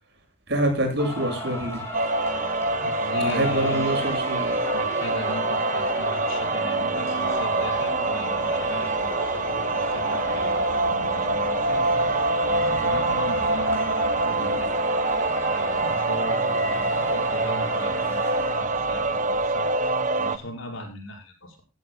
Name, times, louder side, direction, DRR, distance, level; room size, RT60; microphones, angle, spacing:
voice 1, 0.5-1.8 3.2-4.6, right 1 dB, 55° right, 4 dB, 7.5 m, -26 dB
Singing, 1.0-18.5, left 1 dB, 15° left, 6.5 m, -36 dB
sound 1, 1.9-20.4, right 2 dB, 40° right, 1.1 m, -25 dB
voice 2, 2.6-4.0 4.7-14.7 15.4-18.2 18.5-21.6, left 1 dB, 75° left, 1 dB, 5.7 m, -38 dB
sound 2, 7.3-17.8, right 1 dB, 75° right, 6.4 m, -41 dB
15.5 x 15.5 x 2.3 m, 0.31 s
head